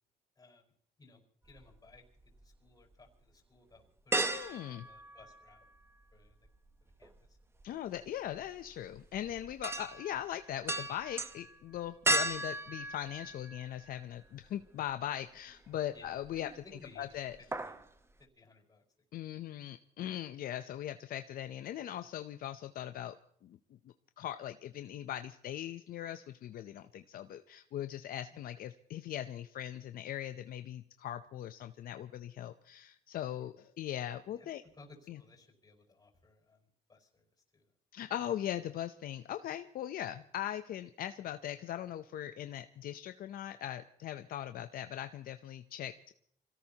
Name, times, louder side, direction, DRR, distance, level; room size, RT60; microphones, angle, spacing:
voice 1, 0.4-0.7 1.0-5.6 6.1-6.5 6.8-7.4 15.9-17.2 17.6-17.8 18.2-18.8 28.3-28.4 33.3-33.5 34.3-37.3 37.5-37.7, left 3 dB, 25° left, 2 dB, 4.9 m, -60 dB
sound 1, 1.5-2.5 2.9-3.0 4.1-5.8 6.1-14.0 14.4-14.5 16.0-16.6 16.8-17.1 17.3-17.9 18.2-18.3, right 2 dB, 15° right, 1.0 m, -36 dB
voice 2, 4.2-4.8 7.6-16.5 17.0-17.4 19.1-23.2 23.4-23.6 24.2-34.6 35.1-35.2 37.9-46.1, left 11 dB, 60° left, 9 dB, 0.7 m, -40 dB
27.0 x 17.5 x 2.9 m, 0.64 s
cardioid pair, 110°, 17 cm